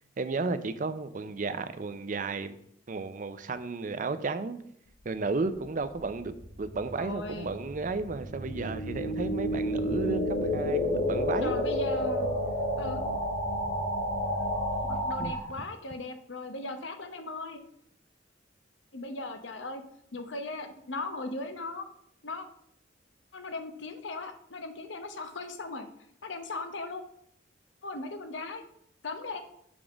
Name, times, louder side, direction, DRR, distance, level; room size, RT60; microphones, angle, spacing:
voice 1, 0.2-2.6 2.9-4.6 5.0-11.6 15.2-15.3, right 3 dB, 45° right, 0.5 m, -33 dB
sound 1, 6.2-15.4, equal, 35° left, 1.8 m, -30 dB
voice 2, 7.0-7.5 11.4-12.3 12.8-13.1 14.8-17.6 18.9-19.8 20.1-21.9 22.2-22.5 23.3-25.9 26.2-27.0 27.8-28.6 29.0-29.4, left 2 dB, 80° left, 0.9 m, -38 dB
6.9 x 3.7 x 6.2 m
head